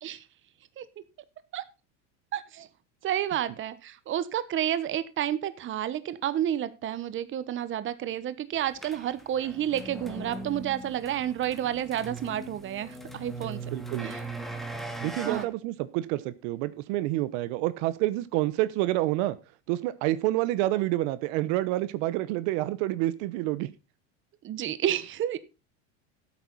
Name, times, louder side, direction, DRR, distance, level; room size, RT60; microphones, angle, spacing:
voice 1, 2.3-2.7 3.0-13.6 14.0-14.2 15.2-15.5 24.4-25.4, right 11 dB, 30° right, 15 dB, 1.1 m, -30 dB
sound 1, 8.8-15.4, right 2 dB, ahead, 1.8 m, -39 dB
voice 2, 13.7-14.1 15.0-19.4 19.7-23.7, right 16 dB, 65° right, 15 dB, 1.0 m, -28 dB
12.5 x 8.6 x 4.0 m, 0.29 s
supercardioid pair, 125°, 38 cm